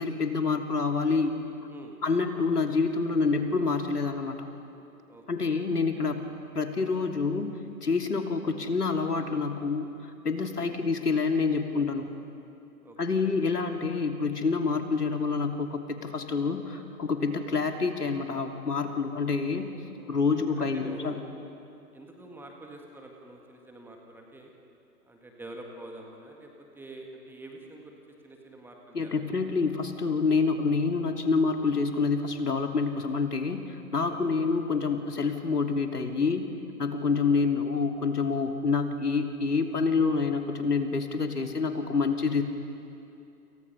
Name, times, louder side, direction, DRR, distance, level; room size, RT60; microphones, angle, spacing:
voice 1, 0.0-1.4 2.0-4.5 5.3-6.2 6.5-7.5 7.8-9.9 10.2-12.1 13.0-19.7 20.1-21.2 28.9-36.5 36.8-42.4, left 4 dB, 75° left, 4 dB, 2.8 m, -27 dB
voice 2, 5.1-5.6 10.6-10.8 12.8-13.3 19.9-21.2 21.9-24.5 25.0-29.5 34.1-34.5, right 2 dB, 5° right, 1 dB, 1.8 m, -47 dB
29.5 x 28.5 x 5.7 m, 2.7 s
figure-of-eight pair, 125°, 47 cm